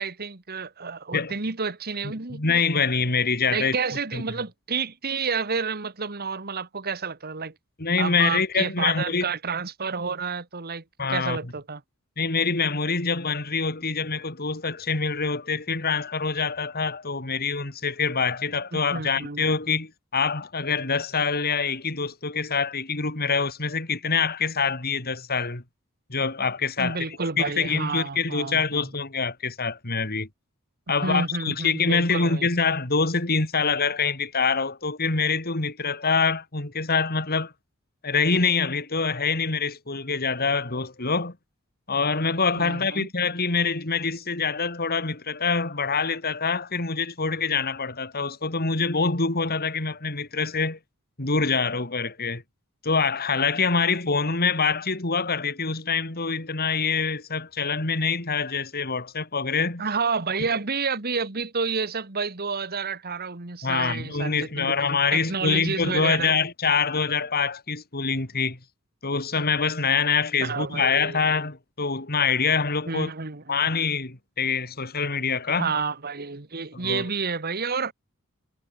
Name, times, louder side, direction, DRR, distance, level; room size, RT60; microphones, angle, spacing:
voice 1, 0.0-2.4 3.5-7.5 8.0-10.8 11.1-11.8 18.9-19.5 26.8-28.9 31.0-32.5 42.6-43.1 59.8-64.7 65.1-66.4 70.4-71.2 72.9-73.6 75.6-77.9, right 5 dB, 45° right, 1.8 m, -30 dB
voice 2, 2.3-3.7 4.1-4.2 7.8-9.2 11.0-11.5 12.2-25.6 26.1-30.3 30.9-37.5 38.0-41.4 41.9-50.8 51.2-52.4 52.8-59.8 60.4-60.5 63.6-68.6 69.0-73.1 73.5-75.7 76.7-77.1, left 5 dB, 45° left, 3.1 m, -25 dB
head